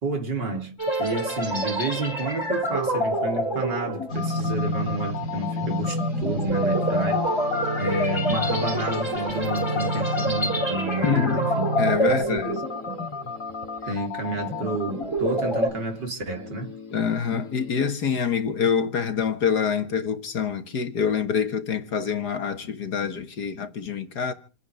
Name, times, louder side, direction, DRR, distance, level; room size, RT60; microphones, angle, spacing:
voice 1, 0.0-7.3 7.8-11.7 12.0-12.6 13.8-16.7, right 2 dB, 70° right, 4.0 m, -30 dB
sound 1, 0.8-13.3 13.6-13.9 14.4-15.7, right 1 dB, 15° left, 5.6 m, -27 dB
sound 2, 4.1-17.9, left 1 dB, 45° left, 2.7 m, -31 dB
voice 2, 11.0-11.4 11.8-12.6 16.9-24.3, left 6 dB, 60° left, 2.0 m, -26 dB
28.5 x 9.7 x 5.1 m
omnidirectional pair, 2.0 m